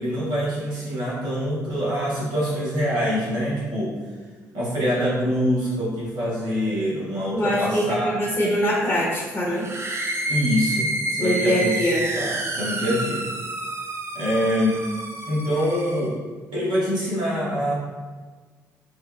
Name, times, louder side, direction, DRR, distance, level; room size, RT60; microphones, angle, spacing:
voice 1, 0.0-4.0 4.5-8.1 10.3-11.7 12.2-13.3 14.1-14.8 15.3-16.2 16.5-17.7, equal, 60° right, -6 dB, 1.3 m, -25 dB
voice 2, 7.3-9.6 11.2-12.1, equal, 30° left, -6 dB, 1.2 m, -23 dB
sound 1, 9.6-16.1, right 1 dB, 30° right, 0.5 m, -29 dB
6.6 x 2.3 x 2.2 m, 1.4 s
figure-of-eight pair, 45°, 9 cm